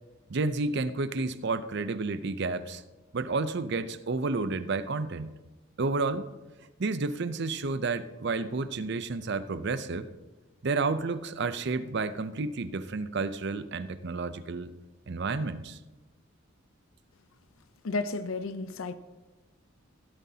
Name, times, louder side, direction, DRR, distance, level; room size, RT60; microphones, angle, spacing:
voice 1, 0.3-2.8 3.1-5.3 5.8-6.3 6.8-10.1 10.6-14.7 15.1-15.8, right 3 dB, 55° right, 0.6 m, -31 dB
voice 2, 17.8-18.9, left 3 dB, 85° left, 0.6 m, -32 dB
16.0 x 12.5 x 2.8 m
head